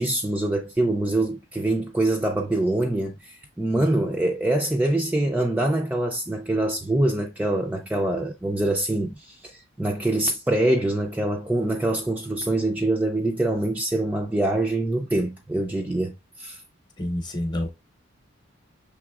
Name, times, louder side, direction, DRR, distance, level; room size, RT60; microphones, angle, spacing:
voice 1, 0.0-16.6, right 1 dB, 5° right, 0.3 m, -24 dB
voice 2, 3.7-4.1 17.0-17.7, left 1 dB, 20° left, 0.8 m, -29 dB
5.9 x 3.4 x 2.3 m
head